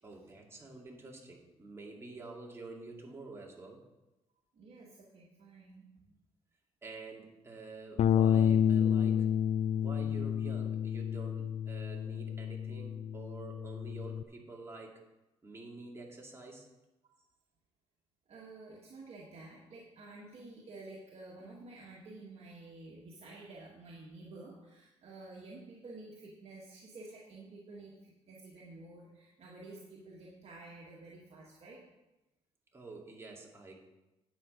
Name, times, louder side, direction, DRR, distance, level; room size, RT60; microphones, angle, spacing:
voice 1, 0.0-3.8 6.8-9.3 9.7-15.0 15.4-16.7 32.7-33.7, right 3 dB, 20° right, -1 dB, 2.3 m, -48 dB
voice 2, 4.5-5.9 18.3-31.8, right 2 dB, 60° right, -3 dB, 1.7 m, -51 dB
Bass guitar, 8.0-14.2, left 9 dB, 65° left, 0.4 m, -30 dB
10.0 x 7.6 x 5.2 m, 1.0 s
cardioid pair, 100°, 12 cm